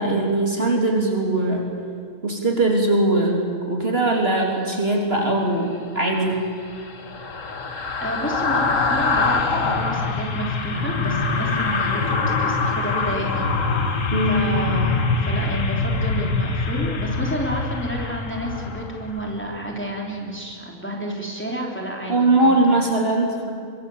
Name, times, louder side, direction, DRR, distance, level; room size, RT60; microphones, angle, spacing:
voice 1, 0.0-1.7 2.2-3.4 3.7-6.4 14.1-14.5 22.1-23.5, right 2 dB, 40° right, 0 dB, 3.5 m, -20 dB
sound 1, 6.0-19.4 19.7-19.9, left 4 dB, 55° left, 1.9 m, -24 dB
voice 2, 8.0-13.5 14.3-22.6, equal, 5° left, -1 dB, 3.5 m, -30 dB
25.0 x 23.5 x 7.2 m, 2.3 s
omnidirectional pair, 1.6 m